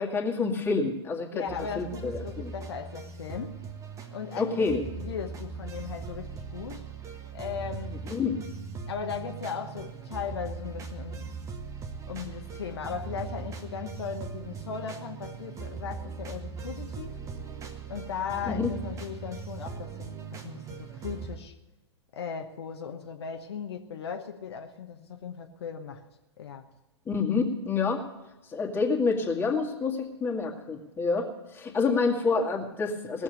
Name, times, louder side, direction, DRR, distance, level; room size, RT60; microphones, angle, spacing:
voice 1, 0.0-1.5 1.8-2.5 4.4-4.8 8.1-8.4 18.5-18.7 27.1-28.0 28.5-33.2, left 4 dB, 15° left, 0 dB, 2.2 m, -28 dB
voice 2, 1.3-3.6 4.1-6.9 7.3-8.0 8.9-11.3 12.1-17.2 17.9-21.5 22.1-26.0 26.4-26.7, left 7 dB, 65° left, 4 dB, 1.1 m, -37 dB
sound 1, 1.5-21.4, right 5 dB, 20° right, 1.4 m, -40 dB
18.5 x 7.2 x 8.2 m, 1.0 s
figure-of-eight pair, 105°, 15 cm